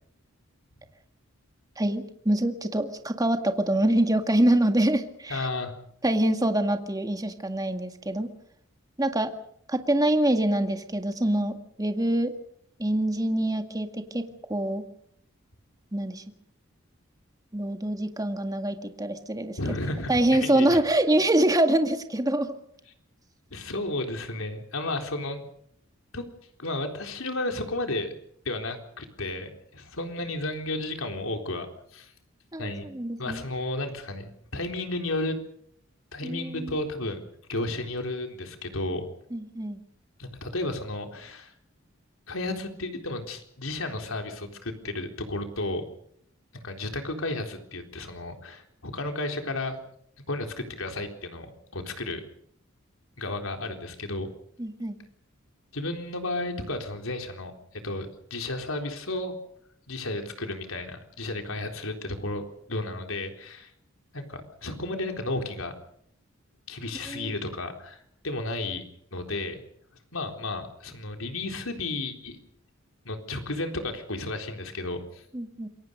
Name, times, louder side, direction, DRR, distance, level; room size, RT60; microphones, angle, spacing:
voice 1, 1.8-5.5 6.0-8.3 9.0-9.3 9.7-12.3 12.8-14.2 14.5-14.8 15.9-16.2 17.5-19.6 20.1-22.5 32.5-33.4 36.2-36.7 39.3-39.8 54.6-55.0 67.1-67.3 75.3-75.7, right 1 dB, 20° right, 6 dB, 2.0 m, -25 dB
voice 2, 5.3-5.7 19.6-20.8 23.5-25.5 26.1-26.2 26.6-28.1 28.4-31.7 31.9-32.1 32.6-32.9 33.2-35.4 36.1-37.2 37.5-39.1 40.2-41.5 42.3-45.8 46.5-49.8 50.3-52.2 53.2-54.3 55.7-59.3 59.9-62.4 62.7-63.7 64.1-65.7 66.7-68.8 69.1-69.6 70.1-72.4 73.0-75.2, left 2 dB, 80° left, 4 dB, 4.0 m, -33 dB
27.5 x 23.0 x 5.3 m, 0.69 s
head